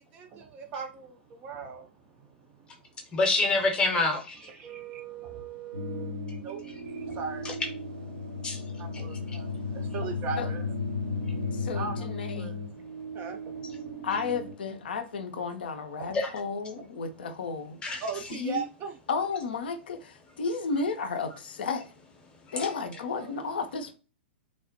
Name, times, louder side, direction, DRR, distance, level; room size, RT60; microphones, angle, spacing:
voice 1, 0.1-1.1 1.4-1.8 4.5-6.1 6.4-6.6 7.1-7.5 8.8-9.5 9.9-10.7 11.7-12.5 13.2-13.4 18.0-18.9 22.9-23.3, right 5 dB, 25° right, 0.4 m, -38 dB
voice 2, 3.1-4.5 7.4-7.5 8.4-8.6 8.9-9.4 16.1-16.3 17.8-18.0 22.4-22.7, left 2 dB, 15° left, 0.7 m, -27 dB
sound 1, 5.7-14.5, left 3 dB, 75° right, 0.7 m, -35 dB
voice 3, 11.5-12.6 14.0-17.8 18.3-18.6 19.1-21.9 22.5-23.9, left 4 dB, 55° left, 0.4 m, -33 dB
3.1 x 2.0 x 2.6 m
figure-of-eight pair, 110°, 6 cm